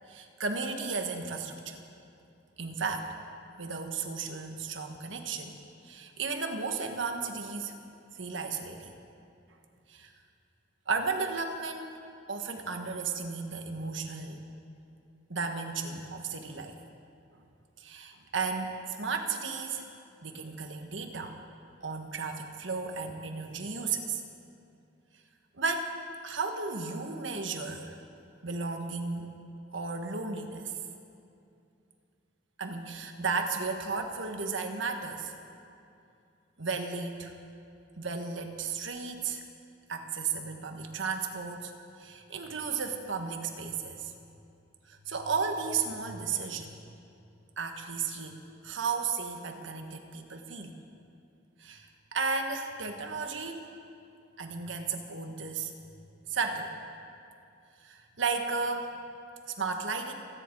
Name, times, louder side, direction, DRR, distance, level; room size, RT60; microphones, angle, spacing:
voice 1, 0.1-1.8 2.6-3.2 3.6-5.6 5.8-7.7 8.1-8.9 9.9-10.1 10.9-12.0 12.3-14.4 15.3-16.8 17.8-19.8 20.2-21.4 21.8-24.2 25.6-25.9 26.2-28.0 28.4-29.3 29.7-30.7 32.6-35.3 36.6-37.3 38.0-39.4 39.9-41.7 42.0-44.1 44.9-46.9 47.6-50.8 51.6-53.6 54.4-55.7 56.3-56.7 57.8-58.9 59.5-60.1, right 4 dB, 80° right, 4 dB, 1.5 m, -34 dB
30.0 x 10.0 x 4.7 m, 2.6 s
head